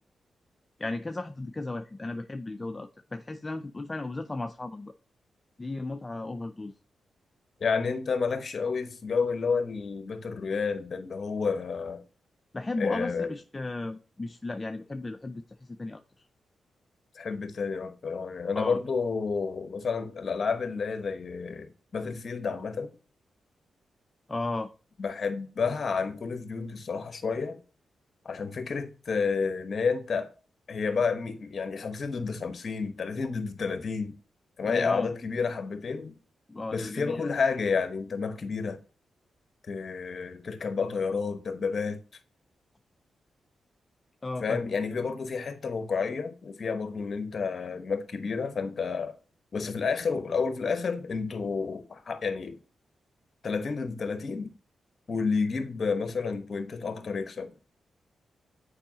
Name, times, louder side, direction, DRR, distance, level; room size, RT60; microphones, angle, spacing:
voice 1, 0.8-4.9 5.6-6.8 12.5-16.0 18.5-18.8 24.3-24.7 34.7-35.1 36.5-37.3 44.2-44.7, left 2 dB, 30° left, 0.4 m, -35 dB
voice 2, 7.6-12.0 12.8-13.3 17.1-22.9 25.0-27.6 28.2-30.3 30.7-34.1 34.6-36.2 36.7-38.8 39.7-42.0 44.4-49.1 49.5-52.6 53.4-54.5 55.1-57.5, left 5 dB, 55° left, 1.0 m, -30 dB
7.1 x 4.8 x 2.8 m
supercardioid pair, 45°, 0 cm